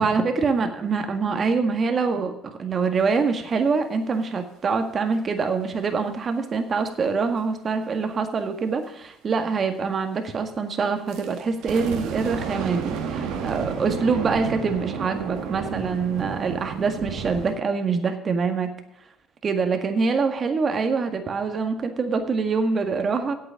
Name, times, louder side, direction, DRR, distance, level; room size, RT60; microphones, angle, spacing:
voice 1, 0.0-18.7 19.4-23.3, right 4 dB, 40° right, 6 dB, 1.8 m, -25 dB
sound 1, 11.1-17.6, right 6 dB, 80° right, 1.7 m, -31 dB
8.7 x 8.5 x 7.1 m, 0.78 s
cardioid pair, 90°, 0 cm